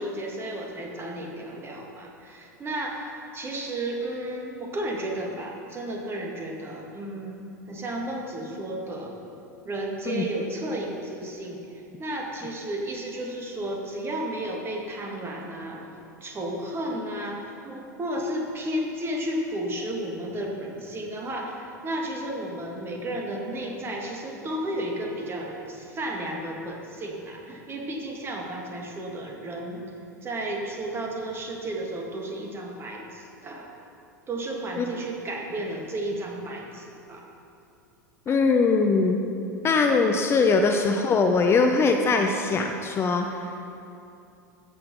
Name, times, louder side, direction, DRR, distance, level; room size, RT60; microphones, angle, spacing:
voice 1, 0.0-9.1 9.6-15.9 16.2-29.8 30.2-33.7 34.3-37.2, right 1 dB, 25° right, 0 dB, 2.3 m, -33 dB
voice 2, 38.3-39.2 39.6-43.4, left 4 dB, 25° left, 4 dB, 0.8 m, -21 dB
14.5 x 8.1 x 5.5 m, 2.7 s
figure-of-eight pair, 85°, 10 cm